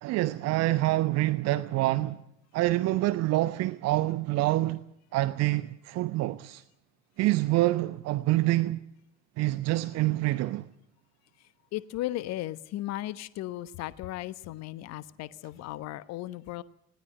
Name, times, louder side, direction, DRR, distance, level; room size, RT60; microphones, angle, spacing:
voice 1, 0.0-2.2 2.5-4.8 5.1-6.6 7.2-8.8 9.4-10.7, right 17 dB, 50° right, 0.9 m, -26 dB
voice 2, 11.7-16.6, left 15 dB, 50° left, 1.1 m, -36 dB
20.5 x 18.0 x 7.8 m
figure-of-eight pair, 60°, 35 cm